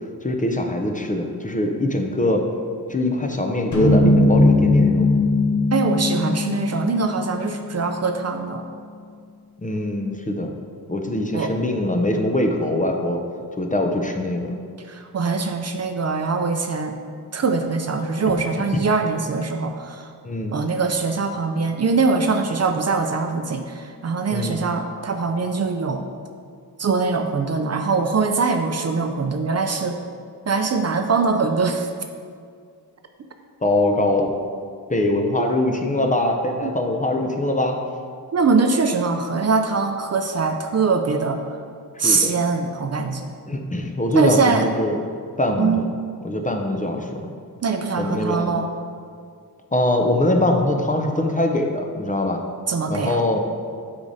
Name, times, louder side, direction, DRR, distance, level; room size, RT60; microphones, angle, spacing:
voice 1, 0.2-2.4 2.9-5.1 9.6-10.5 10.9-13.2 13.6-14.5 18.7-18.8 20.2-20.6 24.3-24.6 33.6-34.3 34.9-37.8 42.0-42.3 43.5-45.0 45.4-45.8 46.2-47.3 48.0-48.5 49.7-52.4 52.9-53.4, left 1 dB, 20° left, 3 dB, 0.5 m, -22 dB
sound 1, 3.7-8.0, left 2 dB, 45° left, 0.9 m, -19 dB
voice 2, 5.7-8.6 11.3-11.5 14.9-16.9 17.3-20.1 20.5-26.0 26.8-30.0 30.5-31.9 35.4-35.5 36.6-36.7 38.3-41.6 42.0-43.3 44.2-44.6 45.6-45.9 47.6-48.7 52.7-53.2, right 4 dB, 40° right, 6 dB, 0.4 m, -22 dB
8.2 x 5.0 x 2.7 m, 2.2 s
wide cardioid pair, 90°, 39 cm